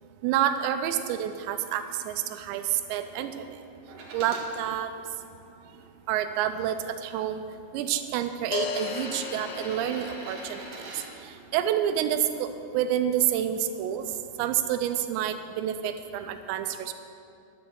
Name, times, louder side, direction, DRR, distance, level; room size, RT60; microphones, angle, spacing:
voice 1, 0.2-3.6 4.1-4.9 6.1-7.4 7.7-10.7 11.2-14.1 14.4-16.9, right 10 dB, 80° right, 9 dB, 2.8 m, -28 dB
sound 1, 1.6-1.7 8.5-10.8, left 7 dB, 80° left, 2.1 m, -35 dB
sound 2, 3.9-4.5 5.2-6.2 7.2-7.3 8.6-11.1 13.0-13.1, right 3 dB, 55° right, 2.7 m, -43 dB
10.5 x 10.5 x 6.9 m, 2.5 s
omnidirectional pair, 5.3 m